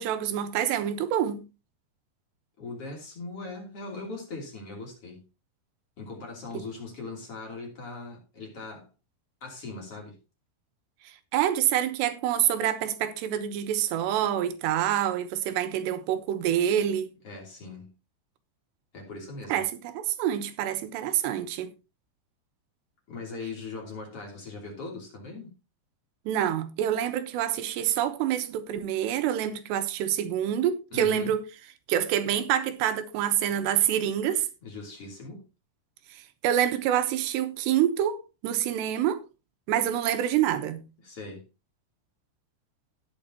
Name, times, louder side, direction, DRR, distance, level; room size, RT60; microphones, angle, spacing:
voice 1, 0.0-1.4 6.5-6.6 11.3-17.1 19.5-21.7 26.3-31.4 31.9-34.5 36.1-39.2 39.7-40.8, right 10 dB, 90° right, 3.2 m, -27 dB
voice 2, 2.6-5.2 6.0-8.9 9.4-10.2 17.2-17.9 18.9-19.6 23.1-25.5 30.9-31.3 34.6-35.4 41.0-41.4, left 3 dB, 35° left, 3.5 m, -40 dB
17.5 x 7.2 x 2.8 m
omnidirectional pair, 4.8 m